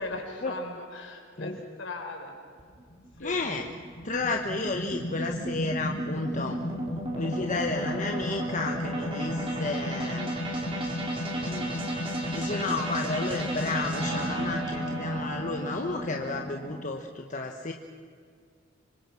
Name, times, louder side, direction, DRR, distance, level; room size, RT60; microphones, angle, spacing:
voice 1, 0.0-2.4 3.2-3.4, left 2 dB, 65° left, 3 dB, 4.7 m, -38 dB
sound 1, 2.6-16.8, equal, 30° right, 4.7 m, -32 dB
voice 2, 3.2-3.7 4.0-6.6 7.1-10.3 11.3-11.8 12.3-17.7, left 3 dB, 40° left, 3 dB, 1.3 m, -32 dB
26.0 x 25.0 x 5.9 m, 2.2 s
head